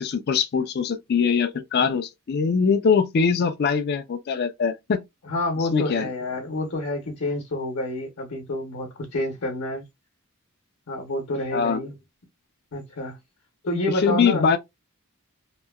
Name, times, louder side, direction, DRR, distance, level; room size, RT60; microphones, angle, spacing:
voice 1, 0.0-5.0 5.7-6.1 11.5-11.8 14.0-14.6, left 6 dB, 45° left, 0.4 m, -22 dB
voice 2, 5.3-9.8 10.9-11.9 12.7-13.2 13.6-14.5, left 1 dB, 65° left, 0.8 m, -28 dB
2.9 x 2.1 x 2.2 m
head